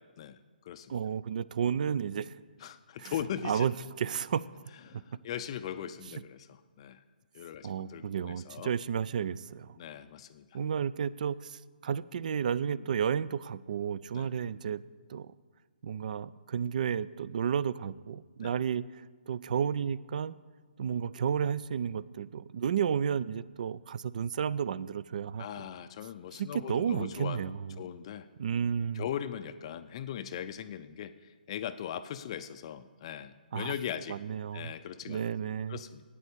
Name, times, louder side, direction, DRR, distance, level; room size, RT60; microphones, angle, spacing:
voice 1, 0.9-2.4 3.0-3.1 3.4-4.5 4.9-5.0 6.1-6.2 7.6-9.8 10.5-14.8 15.1-15.3 15.8-19.0 19.3-20.4 20.8-25.5 26.3-27.8 28.4-29.0 33.5-33.7 34.1-34.7 35.1-35.8, right 7 dB, 50° right, 19 dB, 0.3 m, -32 dB
voice 2, 2.6-3.7 4.9-7.0 7.3-8.7 9.8-10.5 14.1-14.3 18.4-18.5 25.4-27.5 27.8-28.3 28.9-34.2 34.5-35.2 35.7-36.0, left 9 dB, 35° left, 11 dB, 0.4 m, -39 dB
8.9 x 8.3 x 8.3 m, 1.4 s
hypercardioid pair, 155°, 5 cm